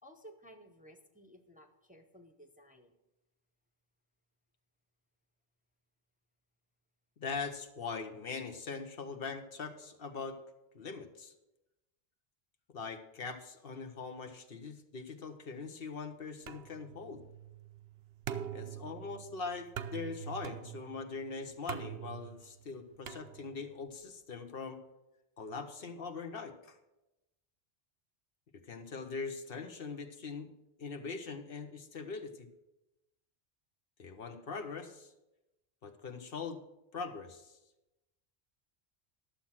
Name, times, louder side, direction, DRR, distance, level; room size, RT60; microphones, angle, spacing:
voice 1, 0.0-2.9, equal, 10° right, 5 dB, 0.7 m, -56 dB
voice 2, 7.2-10.4 10.7-11.3 12.7-17.2 18.5-24.8 25.4-26.8 28.7-30.5 30.8-32.5 34.0-35.1 35.8-36.6 36.9-37.6, left 4 dB, 65° left, 7 dB, 1.1 m, -42 dB
sound 1, 16.5-23.8, right 9 dB, 80° right, 0.9 m, -45 dB
11.5 x 7.3 x 5.8 m, 0.96 s
omnidirectional pair, 1.0 m